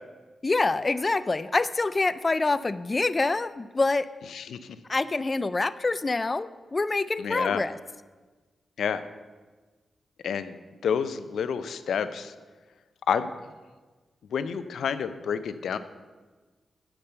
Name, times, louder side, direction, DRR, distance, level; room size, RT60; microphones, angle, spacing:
voice 1, 0.4-4.1 4.9-7.8, left 3 dB, 30° left, 15 dB, 0.3 m, -26 dB
voice 2, 4.3-4.8 7.2-7.6 8.8-9.0 10.2-10.6 10.8-12.3 13.1-13.3 14.3-15.8, left 7 dB, 85° left, 12 dB, 0.5 m, -29 dB
8.6 x 6.0 x 6.8 m, 1.3 s
cardioid pair, 100°, 0 cm